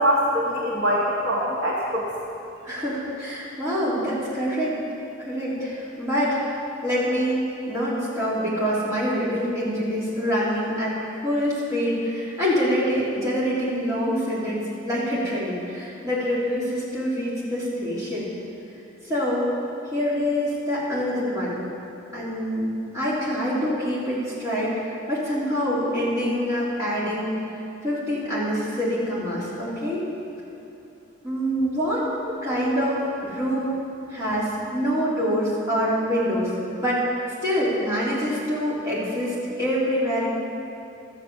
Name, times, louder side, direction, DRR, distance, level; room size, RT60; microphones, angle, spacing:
voice 1, 0.0-2.1, equal, 55° right, -6 dB, 1.7 m, -23 dB
voice 2, 2.6-4.8 5.2-6.5 6.8-11.0 11.2-18.3 19.0-19.5 19.9-21.6 22.1-27.4 27.8-30.0 31.2-32.0 32.4-36.5 36.8-37.0 37.4-40.3, equal, 15° right, -10 dB, 3.5 m, -25 dB
13.5 x 7.3 x 7.2 m, 2.7 s
head